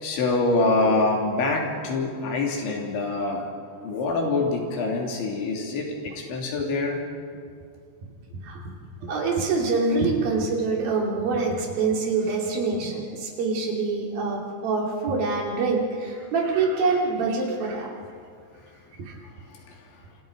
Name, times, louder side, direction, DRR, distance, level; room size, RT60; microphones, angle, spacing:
voice 1, 0.0-3.5 3.8-7.0 19.7-19.8, left 3 dB, 65° left, 0 dB, 5.3 m, -25 dB
voice 2, 9.0-17.9 19.0-19.2, right 4 dB, 50° right, -1 dB, 4.5 m, -25 dB
29.0 x 27.5 x 5.3 m, 2.3 s
omnidirectional pair, 5.7 m